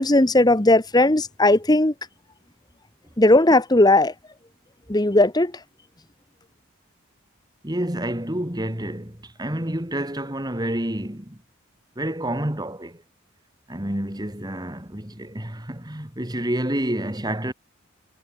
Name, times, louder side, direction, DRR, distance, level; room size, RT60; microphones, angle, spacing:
voice 1, 0.0-1.9 3.2-4.1 4.9-5.5, left 2 dB, 20° left, 1.2 m, -17 dB
voice 2, 7.6-11.4 12.0-13.0 13.7-17.5, right 1 dB, 20° right, 2.5 m, -29 dB
head